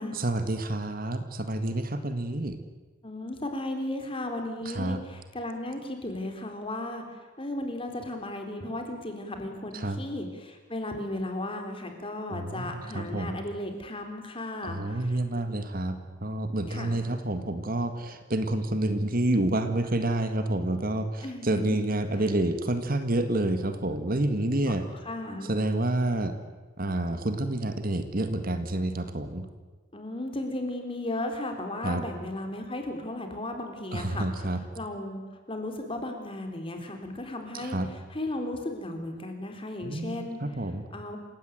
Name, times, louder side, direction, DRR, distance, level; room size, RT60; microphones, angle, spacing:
voice 1, 0.1-2.6 4.7-5.0 9.7-10.0 12.3-13.4 14.6-24.9 25.4-26.3 26.8-29.5 31.8-32.0 33.9-34.6 37.5-37.9 39.8-40.9, right 1 dB, 45° right, 9 dB, 1.9 m, -29 dB
voice 2, 3.0-7.0 7.4-15.2 16.7-17.0 21.2-21.8 25.0-25.5 29.9-34.3 34.7-35.2 35.5-37.8 38.1-40.4 40.9-41.2, left 1 dB, 25° left, 5 dB, 3.8 m, -35 dB
28.0 x 17.0 x 9.3 m, 1.3 s
head